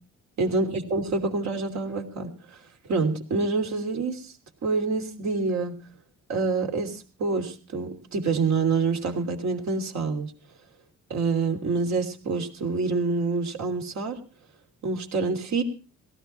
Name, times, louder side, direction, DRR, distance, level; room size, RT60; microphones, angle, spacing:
voice 1, 0.4-2.6 2.8-4.3 4.6-5.8 6.3-10.3 11.1-14.2 14.8-15.6, right 4 dB, 65° right, 4 dB, 3.0 m, -27 dB
17.5 x 14.0 x 4.4 m, 0.36 s
cardioid pair, 90°, 30 cm